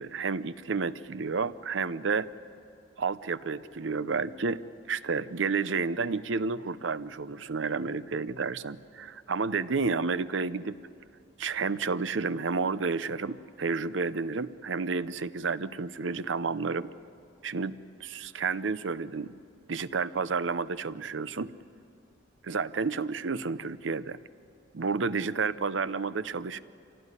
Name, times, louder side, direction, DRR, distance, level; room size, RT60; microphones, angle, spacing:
voice 1, 0.0-2.3 3.0-4.6 4.9-10.8 11.4-16.9 17.4-19.4 19.7-21.5 22.4-24.2 24.7-26.6, right 4 dB, 80° right, 15 dB, 0.7 m, -31 dB
25.5 x 17.0 x 9.8 m, 2.6 s
head